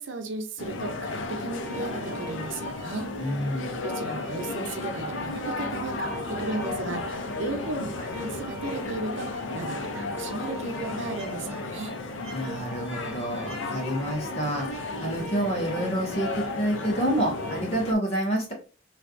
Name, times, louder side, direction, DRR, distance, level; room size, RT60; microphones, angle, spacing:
voice 1, 0.0-3.1 3.8-12.0, right 3 dB, 80° right, 0.6 m, -35 dB
sound 1, 0.6-17.9, left 2 dB, 85° left, 0.5 m, -34 dB
sound 2, 1.3-17.6, right 1 dB, 35° right, 0.7 m, -43 dB
voice 2, 3.2-3.8 12.3-18.5, right 1 dB, 35° left, 1.6 m, -28 dB
3.3 x 3.2 x 2.5 m
head